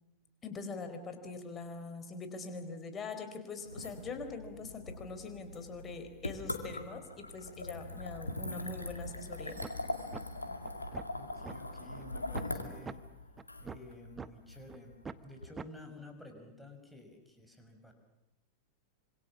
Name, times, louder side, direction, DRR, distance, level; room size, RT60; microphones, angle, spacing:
voice 1, 0.4-9.6 10.4-10.6, left 3 dB, 25° left, 8 dB, 4.2 m, -43 dB
sound 1, 3.6-15.5, left 2 dB, 80° left, 2.4 m, -42 dB
Doorbell, 9.4-11.3 15.3-15.4, right 5 dB, 65° right, 7.2 m, -63 dB
sound 2, 9.6-9.8 10.1-10.2 10.6-11.6 12.0-12.1 12.3-12.5 12.9-13.0 13.4-14.3 14.7-14.8 15.0-15.2 15.6-15.7, right 5 dB, 15° right, 0.9 m, -43 dB
voice 2, 11.2-13.0 13.6-15.0 15.2-17.9, left 1 dB, ahead, 3 dB, 5.7 m, -52 dB
26.5 x 26.0 x 7.3 m, 0.91 s
figure-of-eight pair, 90°, 0 cm